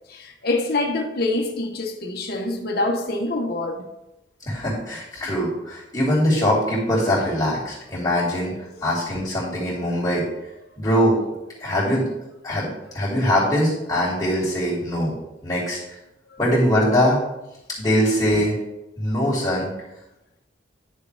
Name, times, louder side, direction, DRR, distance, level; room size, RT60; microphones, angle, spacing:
voice 1, 0.1-3.9, left 2 dB, 55° left, 1.0 m, -25 dB
voice 2, 4.4-8.5 8.8-10.2 10.8-11.2 11.6-12.1 12.4-15.1 15.4-16.0 16.4-17.2 17.8-18.6 19.0-19.7, equal, 20° left, 2.8 m, -22 dB
10.5 x 6.7 x 3.4 m
head